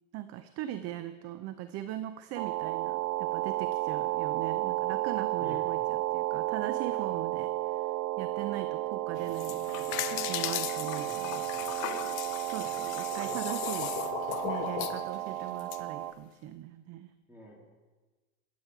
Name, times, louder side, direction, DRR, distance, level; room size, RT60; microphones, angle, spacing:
voice 1, 0.1-11.5 12.5-14.0 14.4-17.1, right 13 dB, 35° right, 11 dB, 0.6 m, -40 dB
sound 1, 2.4-16.1, right 16 dB, 75° right, 0.7 m, -33 dB
sound 2, 9.2-15.8, left 13 dB, 70° left, 1.0 m, -37 dB
voice 2, 17.3-17.7, left 2 dB, 5° right, -2 dB, 2.9 m, -48 dB
21.5 x 8.6 x 4.7 m, 1.3 s
supercardioid pair, 130°, 42 cm